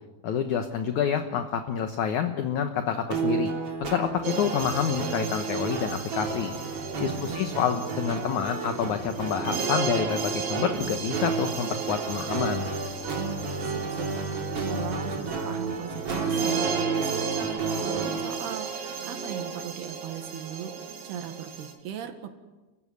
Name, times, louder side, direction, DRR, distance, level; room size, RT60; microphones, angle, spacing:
voice 1, 0.2-3.5 3.8-6.5 7.0-12.7, left 8 dB, 65° left, 7 dB, 2.1 m, -28 dB
sound 1, 3.1-18.3, right 4 dB, 40° right, 3.6 m, -32 dB
sound 2, 4.2-21.7, right 5 dB, 60° right, 4.3 m, -35 dB
voice 2, 7.1-7.6 13.2-14.1 14.6-22.3, right 9 dB, 80° right, 6 dB, 3.9 m, -38 dB
29.0 x 16.0 x 9.7 m, 1.2 s
omnidirectional pair, 4.6 m